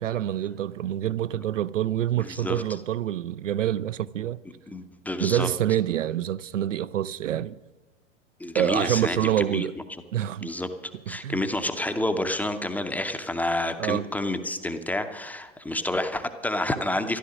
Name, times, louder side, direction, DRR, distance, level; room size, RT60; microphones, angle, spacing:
voice 1, 0.0-4.4 5.2-7.6 8.5-9.7 10.1-10.6 11.1-11.4 13.8-14.1, right 11 dB, 70° right, 0.5 m, -26 dB
voice 2, 2.2-2.6 4.7-5.5 8.4-9.7 10.4-10.7 11.1-17.2, left 1 dB, 5° left, 0.6 m, -29 dB
13.5 x 11.5 x 6.2 m
figure-of-eight pair, 95°, 39 cm